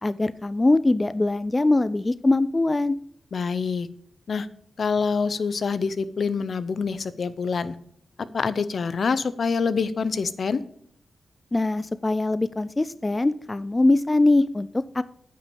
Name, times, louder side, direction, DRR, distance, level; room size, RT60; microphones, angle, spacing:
voice 1, 0.0-3.0 11.5-15.0, left 2 dB, 20° left, 15 dB, 0.3 m, -22 dB
voice 2, 3.3-3.9 4.3-4.5 4.8-7.7 8.3-10.6, left 5 dB, 60° left, 15 dB, 0.6 m, -26 dB
9.7 x 5.9 x 7.0 m, 0.67 s
wide cardioid pair, 95°, 0 cm